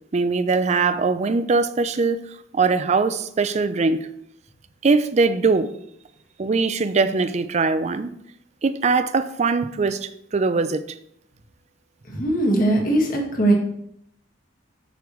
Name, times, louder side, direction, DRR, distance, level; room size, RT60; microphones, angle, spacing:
voice 1, 0.1-2.2 2.5-4.1 4.8-5.7 6.4-8.1 8.6-11.0, right 4 dB, 35° right, 0.4 m, -21 dB
voice 2, 12.1-13.5, right 1 dB, 45° left, 1.7 m, -20 dB
6.9 x 6.5 x 3.1 m
head